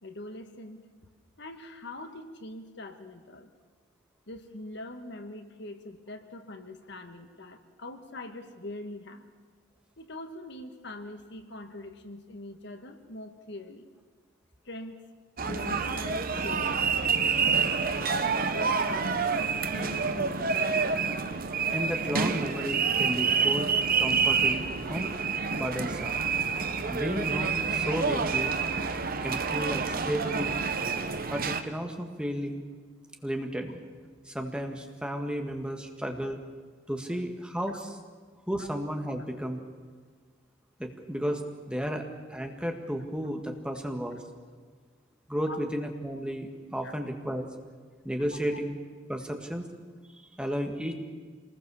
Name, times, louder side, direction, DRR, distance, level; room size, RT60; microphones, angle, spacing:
voice 1, 0.0-0.9 1.4-3.5 4.3-9.2 10.0-13.8 14.6-15.0 15.4-16.9 17.4-19.3 19.7-20.6 23.6-23.7 28.0-28.1 30.2-30.3 38.6-38.7 45.5-45.6 46.8-46.9 48.5-48.6, left 1 dB, 60° left, 7 dB, 1.6 m, -43 dB
sound 1, 15.4-31.6, right 5 dB, 50° right, 1.2 m, -28 dB
voice 2, 21.7-23.7 24.0-25.1 25.5-26.2 26.9-28.6 29.2-30.6 31.3-32.6 33.2-33.8 34.3-36.4 36.9-38.0 38.5-39.6 40.8-41.4 41.7-42.0 42.3-44.2 45.3-47.5 48.0-48.8 49.1-49.6 50.2-50.9, equal, 5° right, 3 dB, 1.8 m, -33 dB
26.0 x 20.0 x 7.1 m, 1.5 s
head